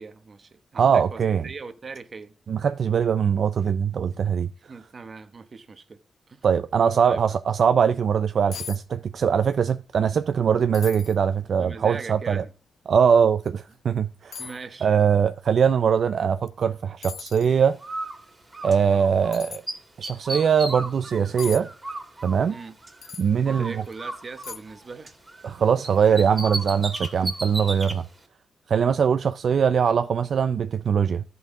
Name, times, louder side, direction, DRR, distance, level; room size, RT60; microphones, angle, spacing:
voice 1, 0.0-2.3 4.7-6.0 6.3-6.4 6.8-7.2 11.5-12.5 14.4-14.9 22.5-22.8 23.4-25.1, right 4 dB, 45° right, 1.0 m, -40 dB
voice 2, 0.7-1.4 2.5-4.5 6.4-12.4 12.9-14.5 14.8-17.8 18.6-19.6 20.0-21.7 22.2-22.6 23.2-23.8 25.4-28.0 28.7-31.2, right 7 dB, 65° right, 0.4 m, -22 dB
sound 1, 8.5-8.8 9.1-9.6 10.0-10.1 10.7-11.2 11.8-11.9 13.4-13.5 14.3-14.6 16.5-16.6 17.0-17.5 19.3-19.6 21.4-21.6 23.0-23.3 23.8-23.9 24.4-24.8 25.1-25.2, left 7 dB, 75° left, 0.4 m, -38 dB
Bird, 17.8-19.4 19.7-23.1 23.4-25.5 25.8-28.0, right 2 dB, 20° right, 2.1 m, -35 dB
14.0 x 5.4 x 3.6 m
cardioid pair, 85°, 0 cm